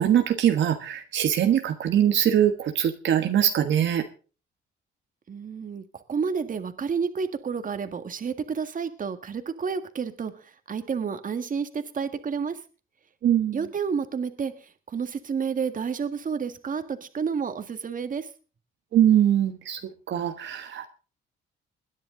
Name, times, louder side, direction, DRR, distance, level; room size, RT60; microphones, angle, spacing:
voice 1, 0.0-4.0 13.2-13.6 18.9-19.8 20.1-20.9, right 10 dB, 70° right, 6 dB, 1.4 m, -22 dB
voice 2, 5.3-12.6 13.5-18.3, right 6 dB, 45° right, 8 dB, 1.8 m, -30 dB
21.0 x 10.5 x 3.9 m, 0.36 s
cardioid pair, 90°, 20 cm